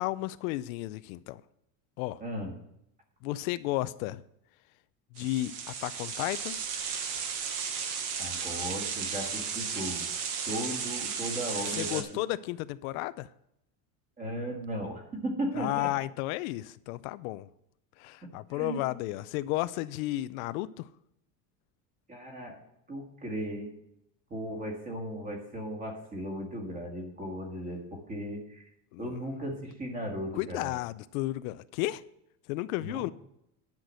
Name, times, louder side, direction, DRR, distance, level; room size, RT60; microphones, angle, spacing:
voice 1, 0.0-1.4 2.0-2.2 3.2-4.2 5.1-5.5 5.8-6.6 11.8-13.3 15.6-17.5 18.0-20.9 28.9-29.1 30.4-32.0 32.5-33.1, left 17 dB, 75° left, 0.5 m, -33 dB
voice 2, 2.2-2.5 8.2-10.1 10.4-12.0 14.2-15.9 18.5-18.8 22.1-22.6 22.9-23.8 24.3-28.7 29.0-30.7 32.8-33.0, equal, 20° right, 1.9 m, -36 dB
sound 1, 5.2-12.0, right 6 dB, 50° right, 1.3 m, -34 dB
10.5 x 5.9 x 6.4 m
cardioid pair, 170°, 42 cm